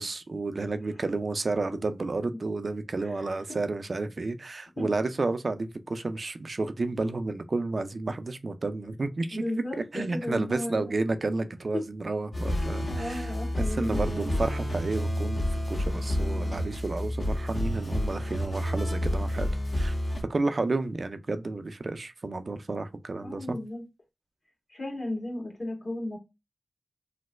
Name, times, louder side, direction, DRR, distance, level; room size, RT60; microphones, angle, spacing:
voice 1, 0.0-9.4 9.9-13.3 13.8-19.9 20.3-23.6, right 3 dB, 60° right, 0.4 m, -31 dB
voice 2, 3.0-3.6 4.8-4.9 9.3-10.8 11.7-11.8 12.5-14.4 23.2-23.8 24.7-26.2, left 1 dB, 60° left, 1.7 m, -35 dB
sound 1, 12.3-20.2, equal, 80° left, 1.7 m, -29 dB
3.1 x 2.1 x 3.1 m
cardioid pair, 50°, 0 cm